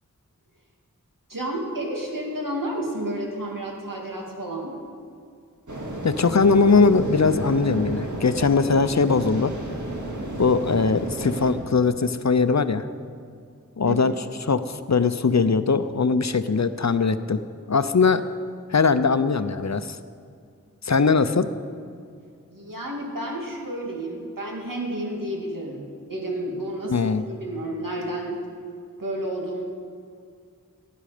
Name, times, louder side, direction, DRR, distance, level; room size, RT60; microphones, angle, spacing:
voice 1, 1.3-4.8 13.9-14.0 22.5-27.0 27.3-28.4 29.0-29.6, right 1 dB, 85° right, -1 dB, 2.3 m, -31 dB
sound 1, 5.7-11.5, right 2 dB, 65° right, 2.0 m, -32 dB
voice 2, 6.0-9.5 10.4-12.9 13.8-17.4 17.7-18.2 18.7-20.0 20.8-21.5 26.9-27.3, left 4 dB, 60° left, 12 dB, 0.6 m, -20 dB
17.0 x 10.5 x 5.1 m, 2.3 s
wide cardioid pair, 40°, 32 cm